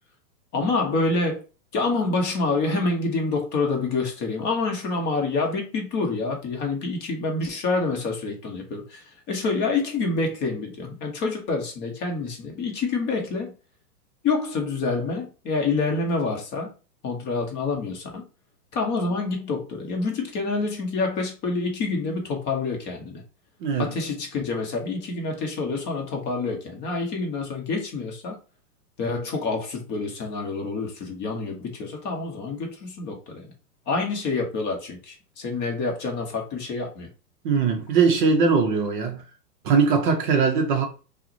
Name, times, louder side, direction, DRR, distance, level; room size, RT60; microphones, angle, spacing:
voice 1, 0.5-1.4 1.7-13.5 14.2-16.7 17.0-18.2 18.7-23.2 23.8-28.4 29.0-33.5 33.9-37.1, left 3 dB, 20° left, 0.7 m, -27 dB
voice 2, 23.6-23.9 37.4-39.2 39.6-40.9, right 5 dB, 35° right, 0.5 m, -21 dB
5.7 x 2.1 x 2.7 m
hypercardioid pair, 120°, 48 cm